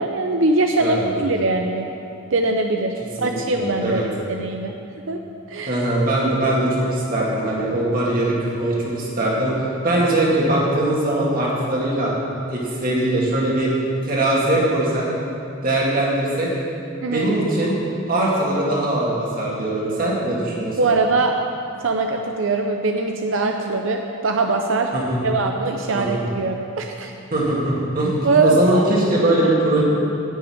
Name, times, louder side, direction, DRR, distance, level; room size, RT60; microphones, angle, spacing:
voice 1, 0.0-1.9 2.3-4.7 5.1-5.2 5.5-5.8 17.0-17.3 20.8-21.4 21.8-24.9 25.2-27.1 28.2-28.9, right 3 dB, 70° right, 3 dB, 0.6 m, -22 dB
voice 2, 3.2-4.1 5.7-12.1 12.5-13.7 14.0-15.1 15.6-16.5 17.0-17.7 18.1-20.8 24.9-25.2 25.9-26.2 27.3-29.8, right 1 dB, 45° right, -5 dB, 2.5 m, -21 dB
10.5 x 5.8 x 8.8 m, 2.6 s
head